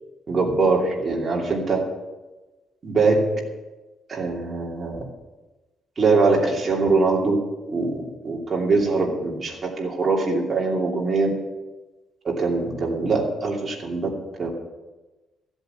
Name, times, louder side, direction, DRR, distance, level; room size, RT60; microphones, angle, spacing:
voice 1, 0.3-1.8 2.8-3.3 4.1-5.0 6.0-7.4 7.7-11.3 12.2-14.1 14.4-14.5, right 3 dB, 30° right, -2 dB, 2.8 m, -22 dB
15.0 x 8.1 x 6.9 m, 1.1 s
cardioid pair, 165°, 0 cm